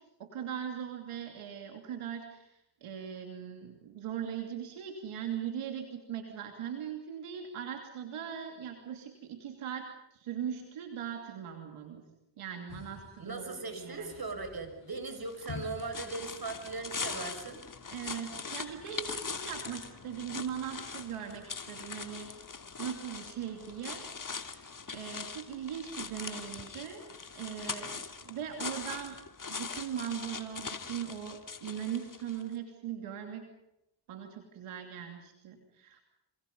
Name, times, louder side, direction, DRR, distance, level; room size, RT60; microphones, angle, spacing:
voice 1, 0.2-2.5 2.8-12.1 12.4-14.1 17.9-22.3 22.8-27.1 27.3-29.2 29.5-33.5 34.1-36.0, right 9 dB, 85° right, 4 dB, 3.0 m, -40 dB
sound 1, 12.7-18.0, left 5 dB, 70° left, 6.8 m, -50 dB
voice 2, 13.2-17.6, right 3 dB, 45° right, 7 dB, 6.7 m, -39 dB
sound 2, 15.3-32.5, left 4 dB, 40° left, 2.8 m, -42 dB
28.5 x 27.0 x 5.4 m, 0.86 s
supercardioid pair, 45°, 49 cm